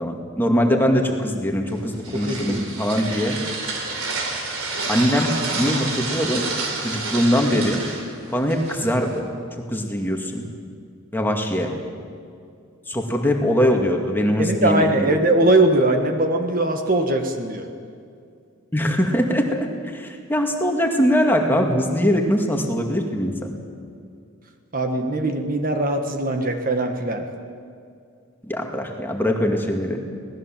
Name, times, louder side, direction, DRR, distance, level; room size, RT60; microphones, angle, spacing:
voice 1, 0.0-3.4 4.9-6.4 6.8-7.9 8.3-9.3 9.7-10.5 11.1-11.7 12.9-15.2 18.7-23.5 28.5-30.0, equal, 10° left, 2 dB, 2.1 m, -22 dB
sound 1, 1.7-9.2, right 3 dB, 85° right, 4.0 m, -29 dB
voice 2, 2.1-2.6 14.4-17.7 24.7-27.3, right 1 dB, 40° right, 5 dB, 1.7 m, -21 dB
27.0 x 19.0 x 7.6 m, 2.3 s
head